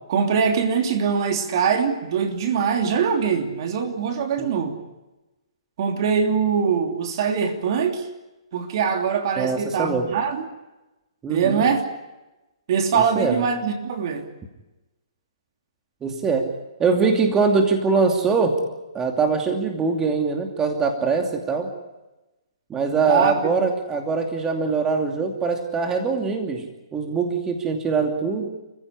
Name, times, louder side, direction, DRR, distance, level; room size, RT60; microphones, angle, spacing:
voice 1, 0.1-4.8 5.8-8.0 8.5-10.5 11.3-11.8 12.7-14.3 23.1-23.3, right 6 dB, 50° right, 4 dB, 3.1 m, -22 dB
voice 2, 9.4-10.1 11.2-11.6 12.9-13.5 16.0-16.5 16.8-18.6 18.9-21.7 22.7-26.6 26.9-28.5, right 4 dB, 15° right, 3 dB, 2.7 m, -22 dB
28.5 x 15.5 x 9.8 m, 1.0 s
hypercardioid pair, 140°, 3 cm